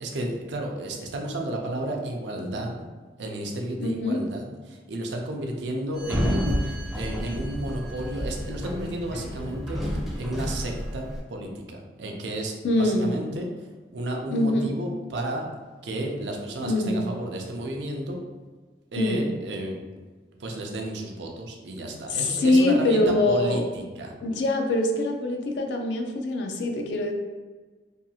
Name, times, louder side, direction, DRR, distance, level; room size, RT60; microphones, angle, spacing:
voice 1, 0.0-2.9 3.2-6.7 7.0-13.5 13.9-15.5 15.8-18.2 18.9-19.8 20.4-24.1, right 1 dB, 75° right, 1 dB, 0.4 m, -32 dB
voice 2, 3.8-4.2 12.6-13.1 14.3-14.7 16.6-17.1 19.0-19.3 22.1-23.7 24.2-27.1, left 2 dB, 75° left, 3 dB, 0.4 m, -24 dB
Sliding door, 6.0-11.2, equal, ahead, 0.4 m, -30 dB
2.7 x 2.3 x 2.7 m, 1.4 s
head